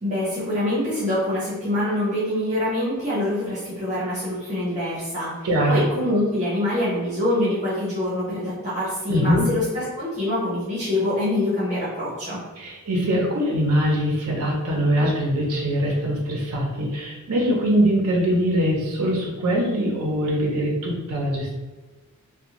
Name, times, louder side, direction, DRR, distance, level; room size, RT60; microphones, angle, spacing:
voice 1, 0.0-12.4, left 1 dB, 30° right, -9 dB, 0.9 m, -25 dB
voice 2, 5.4-5.8 9.1-9.5 12.6-21.6, equal, 70° right, -2 dB, 0.5 m, -22 dB
2.5 x 2.1 x 2.9 m, 1.2 s
head